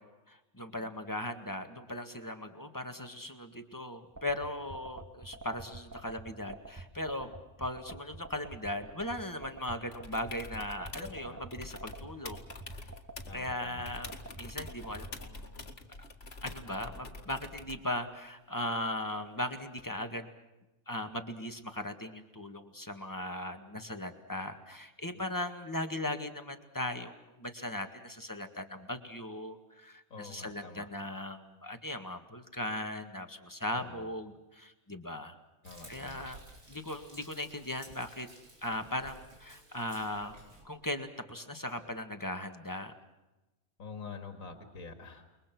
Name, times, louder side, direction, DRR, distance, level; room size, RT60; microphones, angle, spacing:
voice 1, 0.0-7.3 7.6-12.4 12.7-12.8 13.3-14.1 14.4-15.6 16.0-16.1 16.4-20.3 20.9-35.4 35.9-36.4 36.7-38.3 38.6-40.4 40.6-42.9, left 1 dB, 15° left, 7 dB, 1.8 m, -38 dB
sound 1, 4.2-15.1, right 3 dB, 10° right, 2.0 m, -46 dB
sound 2, 9.9-11.2 11.5-13.5 13.8-17.9 19.8-19.9, left 2 dB, 45° left, 2.3 m, -46 dB
voice 2, 11.0-11.4 13.3-13.9 25.1-25.3 30.1-30.9 33.7-34.1 35.6-36.3 43.8-45.3, left 4 dB, 70° left, 6 dB, 2.6 m, -47 dB
Frying (food), 35.6-40.6, right 2 dB, 90° right, 5.1 m, -54 dB
29.0 x 22.5 x 6.1 m, 1.0 s
omnidirectional pair, 1.5 m